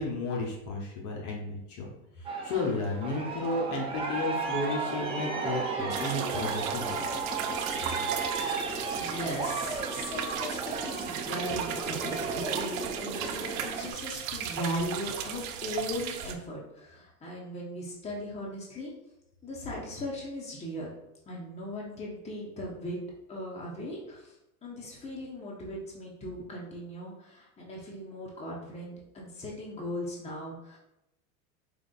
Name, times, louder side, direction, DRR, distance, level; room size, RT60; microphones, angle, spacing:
voice 1, 0.0-1.9 2.2-7.0, left 2 dB, 40° left, -2 dB, 0.9 m, -33 dB
Aircraft, 2.2-13.9, right 4 dB, 15° right, 0.5 m, -34 dB
sound 1, 5.9-16.3, right 9 dB, 60° right, 0.6 m, -36 dB
voice 2, 8.2-18.9 19.4-20.9 21.3-23.0 23.3-24.4 24.6-30.8, equal, 15° left, -3 dB, 0.9 m, -38 dB
5.0 x 2.5 x 2.4 m, 0.85 s
hypercardioid pair, 105°, 45 cm